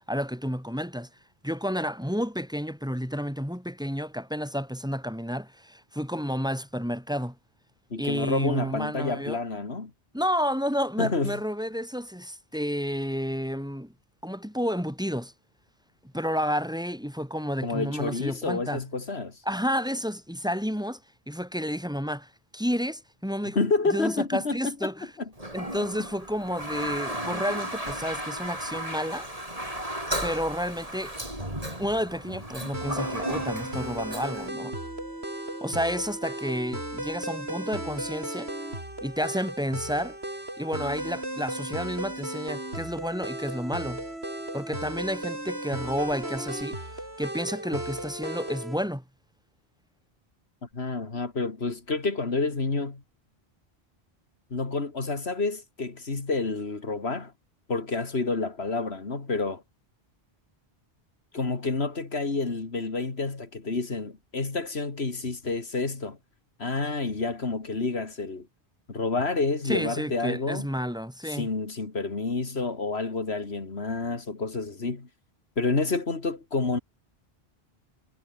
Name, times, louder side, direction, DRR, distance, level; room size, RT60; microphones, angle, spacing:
voice 1, 0.1-1.1 1.4-7.4 8.0-9.4 10.1-13.9 14.2-15.3 16.0-18.8 19.5-21.0 21.3-23.6 23.9-25.1 25.5-29.3 30.2-31.2 31.8-34.8 35.6-38.5 39.0-40.2 40.6-44.0 44.5-49.0 69.6-71.5, equal, 5° right, 5.9 m, -31 dB
voice 2, 7.9-9.9 11.0-11.4 17.6-19.4 23.5-24.9 25.2-25.3 50.7-53.0 54.5-57.3 57.7-59.6 61.3-66.2 66.6-68.5 68.9-70.7 71.3-75.1 75.6-76.8, left 3 dB, 85° left, 2.8 m, -29 dB
Toilet flush, 25.4-34.5, right 1 dB, 35° right, 7.7 m, -34 dB
sound 1, 32.7-48.8, right 1 dB, 85° right, 8.3 m, -35 dB
omnidirectional pair, 1.0 m